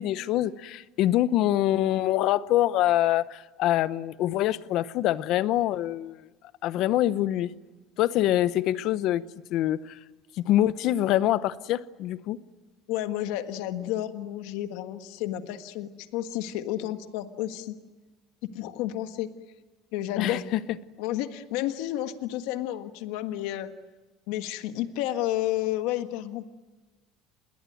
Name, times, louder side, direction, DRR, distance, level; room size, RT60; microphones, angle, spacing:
voice 1, 0.0-6.3 6.6-7.5 8.0-9.2 9.5-10.0 10.4-12.4 20.2-20.6, left 13 dB, 55° left, 0.9 m, -25 dB
voice 2, 12.9-17.7 18.5-19.3 19.9-20.4 21.0-23.7 24.3-26.4, left 13 dB, 80° left, 1.6 m, -31 dB
28.5 x 21.0 x 9.3 m
cardioid pair, 155°, 0 cm